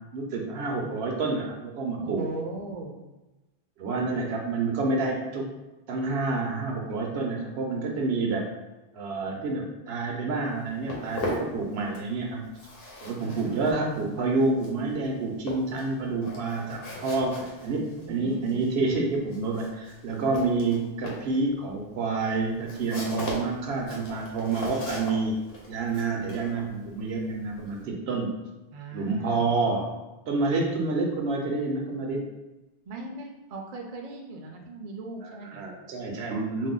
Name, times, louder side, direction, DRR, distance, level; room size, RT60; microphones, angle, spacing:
voice 1, 0.1-2.2 3.8-5.5 5.9-8.5 8.9-12.4 13.0-25.3 25.7-28.4 28.9-29.9 30.3-32.3 35.2-36.7, right 3 dB, 85° right, 1 dB, 0.9 m, -28 dB
voice 2, 2.0-3.0 13.2-14.0 17.9-18.7 28.7-29.8 30.6-30.7 32.9-35.6, right 2 dB, 55° right, 2 dB, 0.4 m, -39 dB
Walk footsteps, 10.4-12.2 12.4-27.8, left 1 dB, 70° left, 0.9 m, -39 dB
2.6 x 2.0 x 3.7 m, 1.1 s
omnidirectional pair, 1.0 m